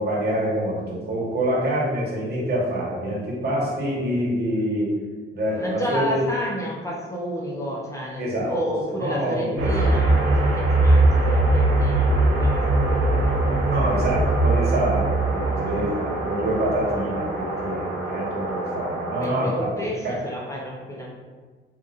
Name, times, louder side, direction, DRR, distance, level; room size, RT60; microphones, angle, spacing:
voice 1, 0.0-5.0 5.3-6.2 8.2-10.0 13.6-20.2, right 1 dB, 50° right, -5 dB, 1.3 m, -26 dB
voice 2, 5.6-13.4 15.6-15.8 19.2-21.1, equal, 15° left, -4 dB, 0.6 m, -31 dB
sound 1, 9.6-19.5, right 2 dB, 80° right, 0.8 m, -21 dB
5.1 x 2.6 x 2.4 m, 1.4 s
cardioid pair, 115°, 21 cm